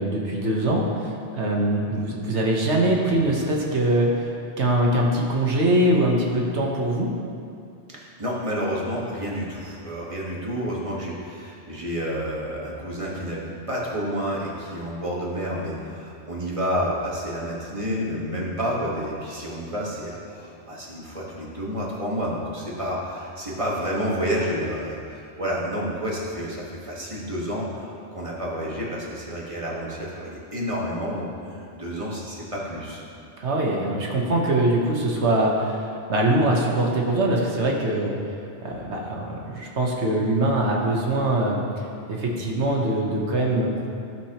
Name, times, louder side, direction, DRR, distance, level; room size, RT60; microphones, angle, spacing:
voice 1, 0.0-4.3 4.6-7.1 33.4-35.8 36.1-38.2 38.6-41.6 42.1-43.9, right 1 dB, 75° right, -1 dB, 1.5 m, -23 dB
voice 2, 7.9-33.0, equal, 30° right, -5 dB, 1.5 m, -30 dB
14.5 x 6.1 x 2.9 m, 2.4 s
omnidirectional pair, 1.2 m